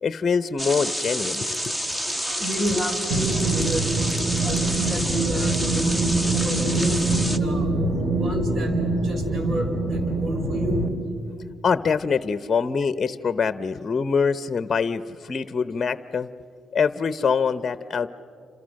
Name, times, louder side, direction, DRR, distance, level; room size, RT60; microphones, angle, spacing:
voice 1, 0.0-1.7 2.1-2.2 11.6-16.3 16.7-18.1, left 5 dB, 35° left, 14 dB, 0.7 m, -24 dB
sound 1, 0.6-7.4, equal, 15° right, 1.2 m, -29 dB
voice 2, 2.2-3.9 4.4-7.7 8.1-11.2, right 1 dB, 50° right, 5 dB, 5.1 m, -31 dB
sound 2, 3.1-10.9, right 2 dB, 30° right, 3.1 m, -24 dB
29.5 x 27.0 x 6.4 m, 2.4 s
cardioid pair, 90°, 0 cm